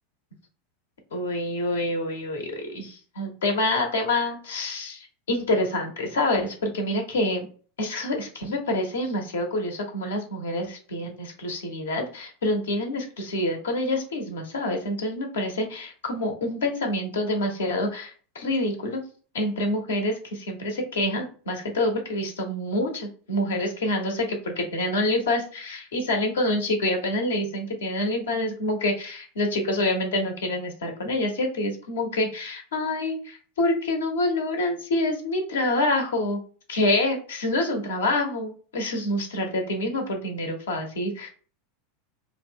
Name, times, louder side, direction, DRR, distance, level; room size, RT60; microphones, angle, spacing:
voice 1, 1.1-7.5 7.8-19.0 19.3-36.4 36.7-41.3, left 1 dB, 80° left, 3 dB, 0.7 m, -27 dB
2.4 x 2.1 x 3.4 m, 0.40 s
hypercardioid pair, 90°, 0 cm